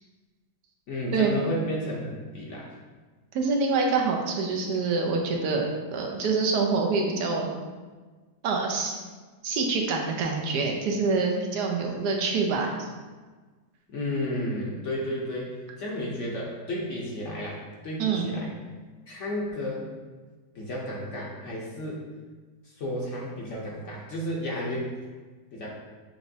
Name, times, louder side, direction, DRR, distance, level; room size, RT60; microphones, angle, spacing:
voice 1, 0.9-2.7 13.9-18.5 19.1-19.9 20.5-22.0 22.6-24.9 25.5-25.7, equal, 60° left, -3 dB, 0.9 m, -32 dB
voice 2, 3.3-7.5 8.4-8.9 9.4-12.9 18.0-18.3, right 4 dB, 80° right, 1 dB, 1.2 m, -26 dB
6.6 x 3.0 x 2.6 m, 1.4 s
omnidirectional pair, 1.8 m